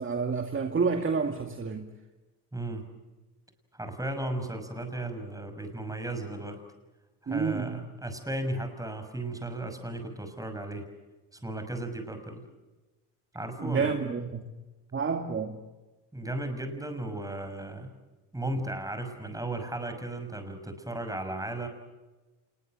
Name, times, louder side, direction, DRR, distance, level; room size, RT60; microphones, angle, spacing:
voice 1, 0.0-1.9 7.3-7.8 13.6-14.5 14.9-15.6, right 5 dB, 25° right, 5 dB, 2.3 m, -29 dB
voice 2, 2.5-2.8 3.7-6.6 7.2-10.9 11.3-12.4 13.3-13.9 16.1-17.9 18.3-21.7, right 1 dB, 10° right, 7 dB, 6.2 m, -35 dB
27.5 x 21.5 x 7.9 m, 1.1 s
hypercardioid pair, 75°, 44 cm